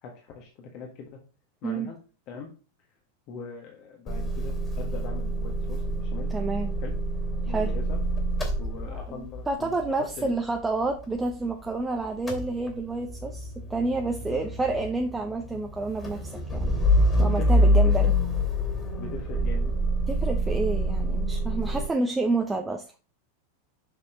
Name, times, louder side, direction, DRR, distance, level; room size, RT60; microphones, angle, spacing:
voice 1, 0.0-1.2 1.6-2.0 2.3-2.5 3.3-6.3 6.8-6.9 7.4-8.0 8.6-10.4 14.2-14.5 17.2-18.1 19.0-19.7, left 5 dB, 40° left, 1 dB, 1.5 m, -41 dB
Motor vehicle (road) / Engine starting / Idling, 4.1-11.8 12.0-21.9, equal, 15° left, 2.5 m, -26 dB
voice 2, 6.3-6.7 7.5-7.7 8.9-16.7 17.2-18.1 20.1-22.8, right 3 dB, 10° right, 3 dB, 0.8 m, -29 dB
7.1 x 6.1 x 3.1 m, 0.35 s
figure-of-eight pair, 90°, 0 cm